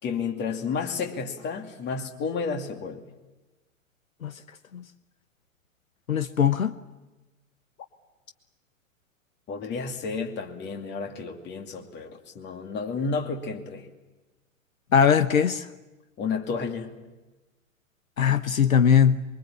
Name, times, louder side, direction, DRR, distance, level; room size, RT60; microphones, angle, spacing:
voice 1, 0.0-3.1 9.5-13.9 16.2-16.9, left 5 dB, 25° left, 2.6 m, -31 dB
voice 2, 6.1-6.7 14.9-15.7 18.2-19.2, left 7 dB, 75° left, 1.0 m, -20 dB
24.5 x 24.0 x 8.8 m
figure-of-eight pair, 105°, 41 cm